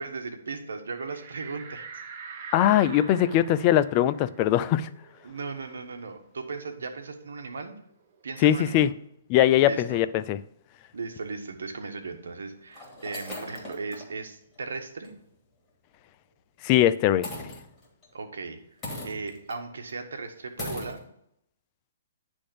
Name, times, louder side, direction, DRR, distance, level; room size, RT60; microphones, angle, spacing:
voice 1, 0.0-1.9 5.2-7.8 8.2-8.9 9.6-10.0 10.9-15.1 18.1-18.6 19.0-21.0, right 4 dB, 80° right, 1.2 m, -37 dB
sound 1, 0.9-6.1 6.5-6.6 6.9-8.6, right 6 dB, 45° right, 1.1 m, -45 dB
voice 2, 2.5-4.9 8.4-8.9 9.3-10.4 16.6-17.3, left 12 dB, 35° left, 0.4 m, -21 dB
sound 2, 12.1-12.2 12.7-14.1 14.6-14.7 15.0-15.2 17.2-18.1 18.8-19.6 19.9-20.0 20.6-21.0, left 2 dB, 20° left, 2.5 m, -39 dB
10.0 x 3.5 x 6.8 m
hypercardioid pair, 140°, 0 cm